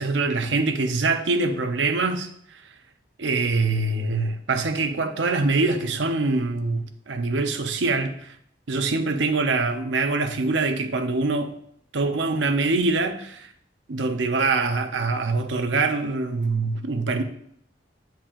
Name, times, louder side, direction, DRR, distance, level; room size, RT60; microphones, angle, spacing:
voice 1, 0.0-2.3 3.2-8.3 8.7-11.5 11.9-13.5 13.9-17.2, right 3 dB, 70° right, 0.7 m, -24 dB
7.5 x 7.3 x 2.4 m
head